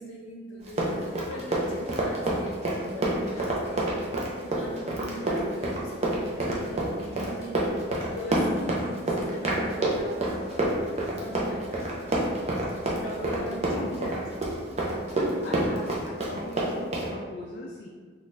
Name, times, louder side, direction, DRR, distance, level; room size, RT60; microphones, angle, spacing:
voice 1, 0.0-3.9 4.3-7.6 8.0-10.8 11.2-11.9 12.9-14.6, equal, 90° left, -2 dB, 0.6 m, -40 dB
Run, 0.6-17.1, right 1 dB, 35° right, 0.5 m, -27 dB
voice 2, 13.2-14.1 15.4-17.9, left 2 dB, 55° left, -3 dB, 0.3 m, -40 dB
3.7 x 2.3 x 2.6 m, 1.5 s
head